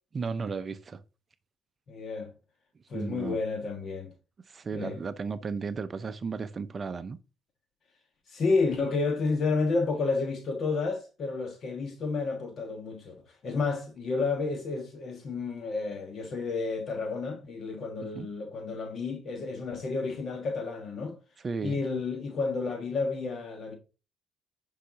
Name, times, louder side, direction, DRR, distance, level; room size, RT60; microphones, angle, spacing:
voice 1, 0.1-1.0 2.9-3.4 4.5-7.2 18.2-18.3 21.4-21.8, right 5 dB, 30° right, 0.6 m, -34 dB
voice 2, 1.9-2.3 2.9-4.1 4.7-5.0 8.3-21.2 21.6-23.8, left 4 dB, 45° left, 1.4 m, -31 dB
10.0 x 5.6 x 2.8 m
cardioid pair, 110°, 0 cm